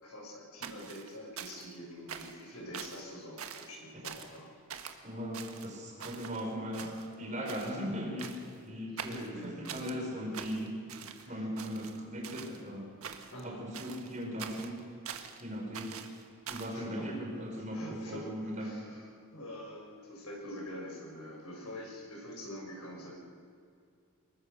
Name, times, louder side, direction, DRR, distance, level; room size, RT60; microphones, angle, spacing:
voice 1, 0.0-4.5 9.0-10.3 11.2-11.4 13.3-13.7 16.7-17.1 17.7-18.3 18.6-23.1, equal, 85° left, 0 dB, 6.1 m, -45 dB
sound 1, 0.6-1.8 2.1-2.4 2.7-3.0 3.4-3.7 4.0-4.4 4.7-5.0 5.3-6.4 6.7-7.2 7.5-7.8 8.2-8.6 9.0-10.0 10.3-11.3 11.6-12.6 13.0-13.4 13.7-15.4 15.7-16.8, right 7 dB, 75° right, 1.6 m, -44 dB
voice 2, 5.0-10.8 11.0-12.9 13.4-14.8 15.4-16.0 16.5-18.8, equal, 35° right, 0 dB, 5.3 m, -38 dB
24.5 x 21.5 x 6.7 m, 2.4 s
head